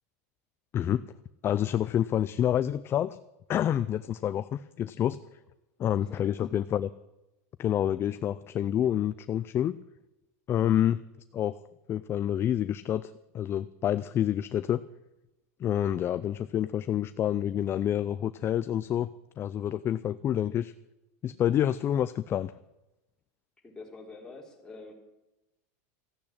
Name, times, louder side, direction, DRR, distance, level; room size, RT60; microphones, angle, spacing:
voice 1, 1.4-3.2 3.5-5.2 5.8-6.9 7.6-9.8 10.5-11.0 11.3-11.6 11.9-14.8 15.6-19.1 19.4-20.7 21.2-22.5, left 10 dB, 30° left, 14 dB, 0.4 m, -28 dB
voice 2, 5.8-6.3 10.6-10.8 23.6-24.9, left 3 dB, 10° left, -1 dB, 3.7 m, -47 dB
14.5 x 8.5 x 8.7 m, 0.94 s
supercardioid pair, 130°, 8 cm